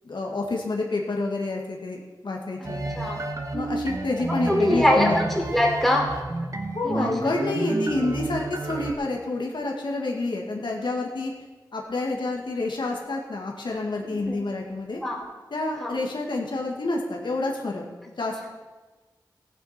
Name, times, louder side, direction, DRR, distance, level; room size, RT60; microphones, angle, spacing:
voice 1, 0.0-2.8 3.5-5.2 6.7-11.3 11.7-15.0 15.5-17.9 18.2-18.5, left 2 dB, 80° left, 0 dB, 1.8 m, -28 dB
sound 1, 2.6-8.9, right 2 dB, 40° right, 1.4 m, -31 dB
voice 2, 4.3-6.1 6.8-7.3 14.1-14.3 15.0-15.2 15.8-16.0, left 1 dB, ahead, -1 dB, 3.2 m, -23 dB
15.5 x 9.6 x 4.3 m, 1.2 s
wide cardioid pair, 65°, 8 cm